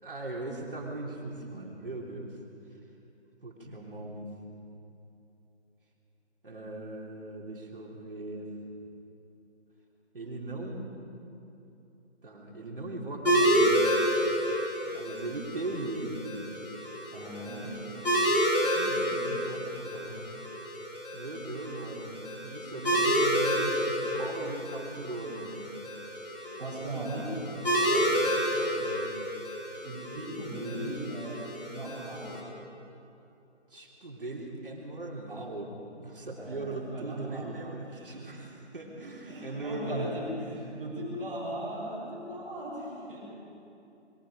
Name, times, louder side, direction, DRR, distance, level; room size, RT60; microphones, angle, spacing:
voice 1, 0.0-2.3 3.4-4.3 6.4-8.5 10.1-10.9 12.2-14.0 14.9-16.3 18.7-20.1 21.1-25.7 27.8-29.1 33.7-35.7 36.0-40.1, right 2 dB, 50° right, -1 dB, 3.6 m, -39 dB
sound 1, 13.2-32.4, equal, 50° left, 5.2 m, -30 dB
voice 2, 17.1-18.0 19.9-20.0 26.6-27.5 29.8-32.4 36.4-37.5 37.9-38.3 39.2-43.2, right 1 dB, 5° right, -13 dB, 4.0 m, -38 dB
26.5 x 22.5 x 5.1 m, 2.8 s
figure-of-eight pair, 175°, 35 cm